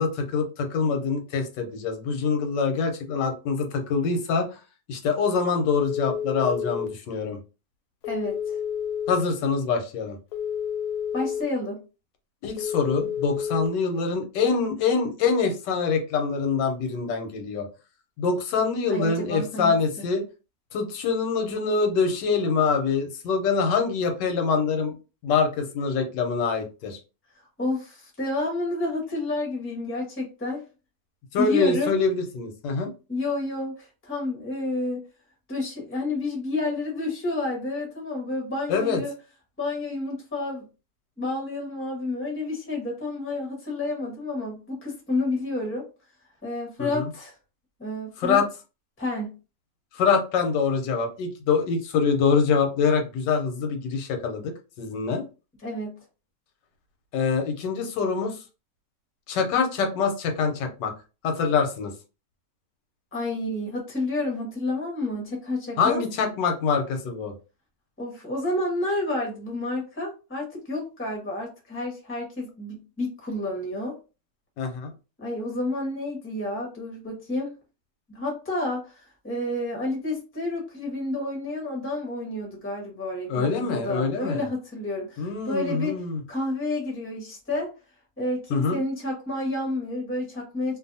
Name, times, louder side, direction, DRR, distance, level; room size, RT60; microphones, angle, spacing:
voice 1, 0.0-4.5 4.9-7.4 9.1-10.2 12.4-17.7 18.2-20.2 20.7-24.9 25.2-27.0 31.3-32.9 38.7-39.0 46.8-47.1 48.2-48.5 49.9-55.2 57.1-58.4 59.3-60.9 61.2-61.9 65.8-67.3 74.6-74.9 83.3-84.5 85.2-86.2 88.5-88.8, left 5 dB, 90° left, 5 dB, 1.3 m, -25 dB
Telephone, 5.8-6.9 8.0-9.1 10.3-11.4 12.6-13.7, left 8 dB, 65° left, 0.9 m, -30 dB
voice 2, 8.0-8.6 11.1-11.8 18.9-20.1 27.6-30.6 31.4-32.0 33.1-35.0 35.5-39.1 39.6-40.7 41.2-45.8 46.4-47.3 47.8-48.4 49.0-49.3 55.6-56.0 63.1-66.0 68.0-73.9 75.2-77.5 78.1-86.0 86.3-87.7 88.2-90.8, left 2 dB, 10° left, -1 dB, 0.7 m, -30 dB
2.6 x 2.5 x 2.6 m, 0.32 s
omnidirectional pair, 1.9 m